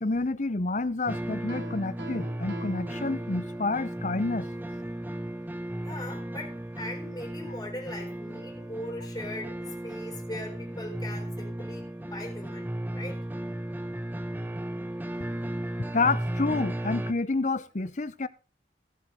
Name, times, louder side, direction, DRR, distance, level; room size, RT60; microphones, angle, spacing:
voice 1, 0.0-4.5 15.9-18.3, left 3 dB, 40° left, 0.7 m, -29 dB
sound 1, 1.1-17.1, right 1 dB, 10° right, 0.8 m, -35 dB
Piano, 1.5-3.8, equal, 65° right, 1.8 m, -43 dB
voice 2, 5.8-13.2, left 1 dB, 20° left, 3.9 m, -40 dB
17.0 x 7.5 x 3.7 m
head